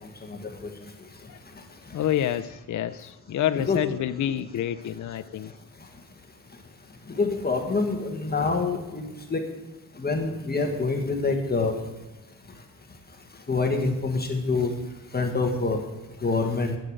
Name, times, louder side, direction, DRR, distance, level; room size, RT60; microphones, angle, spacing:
voice 1, 0.2-0.7 3.5-3.8 7.1-9.4 10.0-11.7 13.5-14.7 15.1-15.8 16.2-16.8, left 3 dB, 30° left, 3 dB, 1.6 m, -26 dB
voice 2, 1.9-5.5, left 11 dB, 65° left, 11 dB, 0.6 m, -28 dB
10.5 x 9.0 x 6.4 m, 1.1 s
wide cardioid pair, 115°, 33 cm